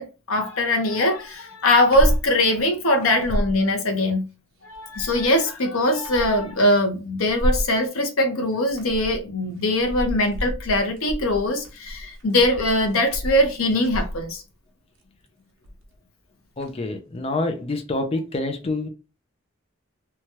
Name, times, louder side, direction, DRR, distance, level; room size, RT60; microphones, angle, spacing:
voice 1, 0.0-4.3 4.6-14.4, left 1 dB, 85° left, 0.8 m, -21 dB
sound 1, 1.9-2.3 2.6-2.7 3.0-3.6 4.7-5.4 5.9-6.5 7.2-7.7 8.5-9.2 9.6-14.4 15.6-15.9 16.6-16.7, equal, 75° right, 0.7 m, -29 dB
voice 2, 16.6-18.9, left 2 dB, 30° left, 0.4 m, -27 dB
2.9 x 2.3 x 2.8 m
head